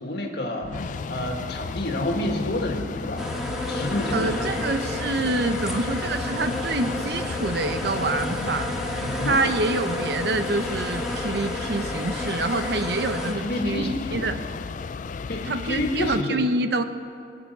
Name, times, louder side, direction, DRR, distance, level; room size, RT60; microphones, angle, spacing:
voice 1, 0.0-3.2 3.7-4.5 9.0-9.4 13.4-14.3 15.3-16.4, left 1 dB, 65° left, 2 dB, 2.0 m, -29 dB
sound 1, 0.6-16.2, left 5 dB, 45° left, 0.3 m, -34 dB
sound 2, 3.2-13.3, left 1 dB, 5° right, 1.6 m, -31 dB
voice 2, 4.1-8.7 9.2-14.4 15.4-16.8, right 2 dB, 65° right, 9 dB, 0.8 m, -26 dB
22.5 x 8.9 x 6.8 m, 2.4 s
head